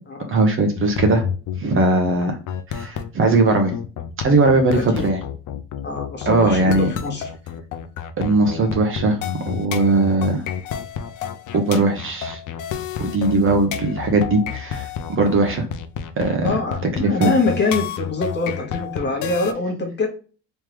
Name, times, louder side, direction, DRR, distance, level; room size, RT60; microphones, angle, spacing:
voice 1, 0.3-1.2 1.6-2.4 2.7-3.7 4.2-5.2 6.3-6.9 8.2-9.2 9.5-10.4 11.5-12.4 13.0-15.6 16.2-16.5 17.0-17.3, right 2 dB, 35° right, 4 dB, 0.9 m, -19 dB
sound 1, 0.8-19.5, left 8 dB, 55° left, 0.6 m, -30 dB
voice 2, 4.7-5.1 5.8-7.3 16.4-20.1, left 3 dB, 30° left, 3 dB, 1.2 m, -24 dB
3.5 x 3.2 x 3.0 m, 0.37 s
cardioid pair, 130°, 36 cm